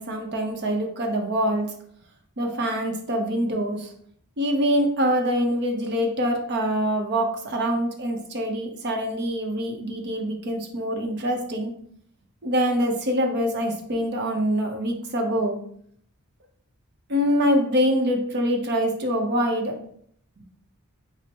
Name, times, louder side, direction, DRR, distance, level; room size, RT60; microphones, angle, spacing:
voice 1, 0.0-1.7 2.4-3.9 4.4-11.7 12.4-15.6 17.1-19.8, equal, 50° right, 3 dB, 0.7 m, -24 dB
4.1 x 2.0 x 4.4 m, 0.64 s
head